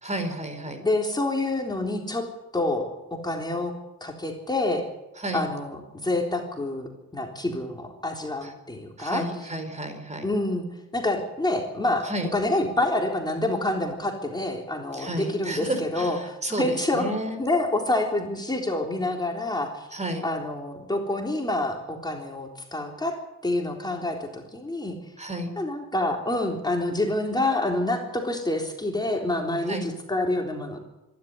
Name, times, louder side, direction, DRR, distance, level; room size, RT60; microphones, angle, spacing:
voice 1, 0.0-0.8 5.2-5.4 8.4-8.5 9.0-10.3 12.0-12.3 14.9-17.4 19.9-20.2 25.2-25.5 29.7-29.9, right 1 dB, 25° right, 8 dB, 4.6 m, -31 dB
voice 2, 0.8-2.3 2.5-3.7 4.0-4.8 5.3-9.2 10.2-10.7 10.9-17.1 17.4-19.9 20.2-23.2 23.4-25.0 25.6-30.8, left 2 dB, 15° left, 1 dB, 3.8 m, -27 dB
25.5 x 12.0 x 9.9 m, 0.96 s
cardioid pair, 90°, 30 cm